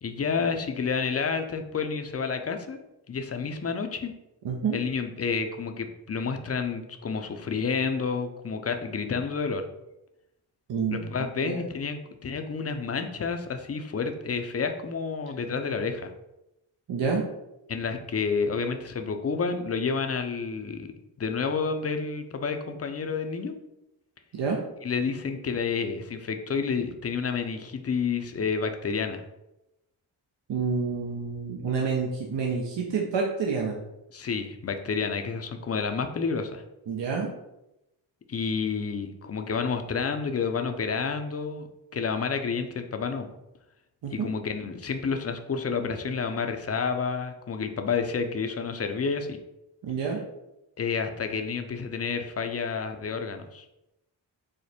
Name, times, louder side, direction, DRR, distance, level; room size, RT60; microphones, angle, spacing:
voice 1, 0.0-2.8 3.1-4.1 4.7-9.6 10.9-16.1 17.7-20.9 21.2-23.5 24.8-29.2 34.1-36.6 38.3-41.7 41.9-43.3 44.1-49.4 50.8-53.6, left 5 dB, 30° left, 6 dB, 0.6 m, -30 dB
voice 2, 4.4-4.8 10.7-11.6 16.9-17.2 24.3-24.6 30.5-33.7 36.9-37.3 44.0-44.3 49.8-50.2, right 5 dB, 65° right, 0 dB, 0.9 m, -28 dB
5.0 x 2.1 x 4.2 m, 0.90 s
supercardioid pair, 45°, 47 cm